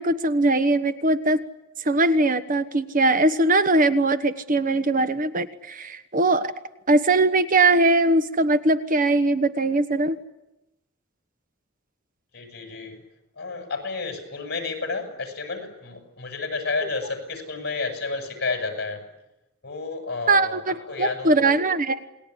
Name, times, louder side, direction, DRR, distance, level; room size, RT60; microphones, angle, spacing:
voice 1, 0.0-1.4 1.8-6.5 6.9-10.2 20.3-22.1, right 2 dB, 40° right, 10 dB, 1.2 m, -21 dB
voice 2, 12.3-13.0 13.4-19.0 19.6-21.6, left 4 dB, 55° left, 5 dB, 8.0 m, -31 dB
28.5 x 21.0 x 10.0 m, 0.93 s
head